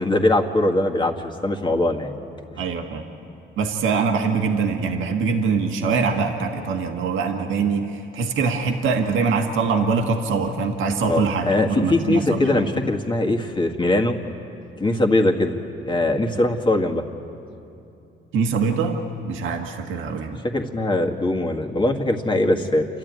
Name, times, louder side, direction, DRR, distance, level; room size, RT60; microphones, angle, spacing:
voice 1, 0.0-2.1 11.0-14.2 14.8-15.6 15.8-17.0 20.5-22.9, left 2 dB, 25° left, 3 dB, 1.9 m, -21 dB
voice 2, 2.6-3.0 3.6-12.7 18.3-19.0 19.2-20.4, right 5 dB, 80° right, 3 dB, 1.6 m, -23 dB
29.0 x 12.5 x 9.5 m, 2.8 s
cardioid pair, 90°, 20 cm